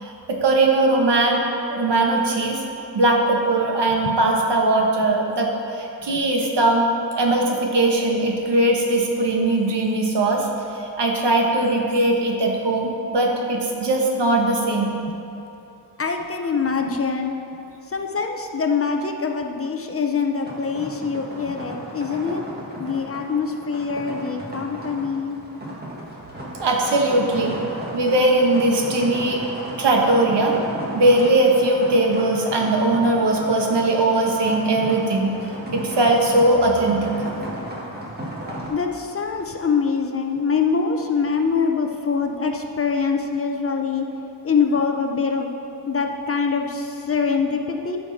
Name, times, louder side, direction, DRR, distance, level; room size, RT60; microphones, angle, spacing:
voice 1, 0.0-1.4 1.7-2.6 2.9-6.9 7.2-10.5 10.7-14.9 26.6-29.4 29.8-30.5 30.9-35.3 35.7-37.3, right 2 dB, 90° right, 0 dB, 1.4 m, -20 dB
voice 2, 16.0-17.3 17.9-22.4 22.8-25.4 38.7-44.0 44.4-45.5 45.9-48.0, left 5 dB, 35° left, 4 dB, 0.7 m, -24 dB
sound 1, 20.4-38.7, right 1 dB, 25° right, 1.7 m, -35 dB
13.5 x 6.6 x 4.1 m, 2.9 s
wide cardioid pair, 170°, 40 cm